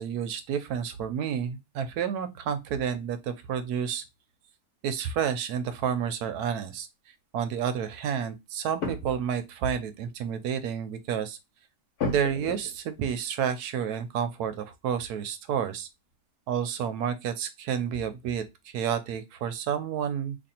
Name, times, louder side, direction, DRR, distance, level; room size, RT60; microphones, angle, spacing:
voice 1, 0.0-4.0 4.8-6.9 7.3-11.4 12.0-15.9 16.5-20.4, right 8 dB, 75° right, 1.1 m, -30 dB
sound 1, 5.1-5.2 6.1-6.5 8.8-9.3 9.7-9.8 10.1-10.2 10.8-10.9 12.0-12.9 15.1-15.2 15.5-16.1 16.5-16.6, left 4 dB, 70° left, 1.5 m, -35 dB
2.9 x 2.5 x 4.2 m
omnidirectional pair, 1.7 m